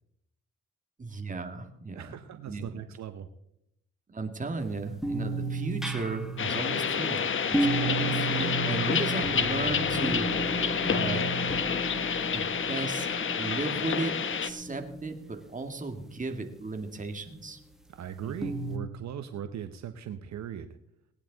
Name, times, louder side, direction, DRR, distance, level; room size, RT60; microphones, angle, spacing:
voice 1, 1.0-2.2 2.5-2.7 4.1-11.3 12.3-13.1 13.4-17.6 18.2-18.4, right 3 dB, 25° right, 5 dB, 2.0 m, -35 dB
voice 2, 1.9-3.3 17.9-20.8, right 9 dB, 65° right, 9 dB, 1.0 m, -39 dB
sound 1, 5.0-15.3 18.4-18.8, right 2 dB, ahead, 1.6 m, -33 dB
sound 2, 6.4-14.5, left 7 dB, 40° left, 1.0 m, -29 dB
18.0 x 10.0 x 4.0 m, 0.77 s
cardioid pair, 90°, 30 cm